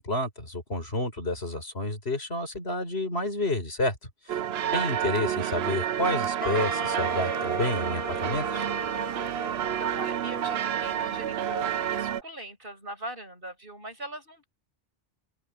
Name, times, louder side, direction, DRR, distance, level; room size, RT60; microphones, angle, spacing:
voice 1, 0.0-4.0 4.3-4.4 4.7-8.7, left 2 dB, 80° left, 5.3 m, -30 dB
sound 1, 4.3-12.2, right 10 dB, 80° right, 0.9 m, -29 dB
Wind instrument woodwind instrument, 6.4-11.4, right 1 dB, 30° left, 6.1 m, -37 dB
voice 2, 9.8-14.5, right 1 dB, 60° right, 6.8 m, -41 dB
omnidirectional pair, 1.0 m